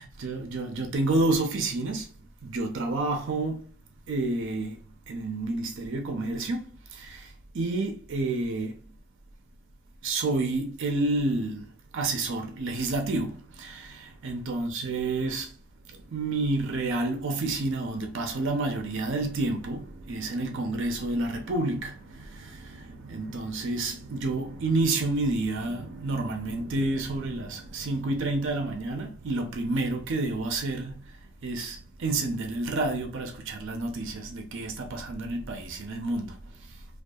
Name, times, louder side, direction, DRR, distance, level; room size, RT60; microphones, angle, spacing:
voice 1, 0.0-3.7 4.1-8.8 10.0-15.6 15.9-36.8, right 2 dB, 60° right, 0.5 m, -30 dB
2.6 x 2.3 x 2.3 m
head